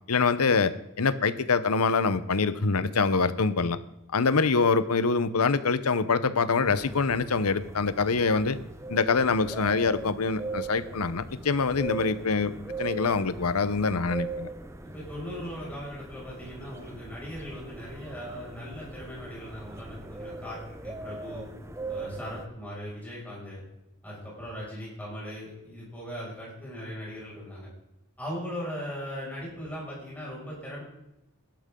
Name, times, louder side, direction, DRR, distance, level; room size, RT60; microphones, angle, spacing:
voice 1, 0.1-3.8 4.1-8.6 8.9-14.5, left 4 dB, 85° left, 14 dB, 0.8 m, -25 dB
sound 1, 6.6-22.5, right 3 dB, 10° right, 0.7 m, -40 dB
voice 2, 14.8-21.4 21.9-23.6 24.0-27.7 28.2-30.8, equal, 5° left, -6 dB, 6.2 m, -39 dB
17.0 x 12.0 x 3.8 m, 0.87 s
head